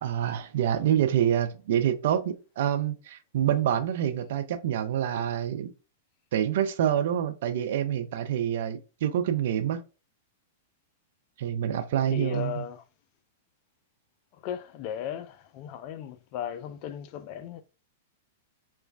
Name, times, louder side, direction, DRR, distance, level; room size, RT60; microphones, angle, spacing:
voice 1, 0.0-5.7 6.3-9.8 11.4-12.6, right 10 dB, 55° right, 0.3 m, -27 dB
voice 2, 12.1-12.8 14.4-17.6, left 9 dB, 40° left, 0.3 m, -36 dB
3.0 x 2.2 x 2.3 m
figure-of-eight pair, 100°, 0 cm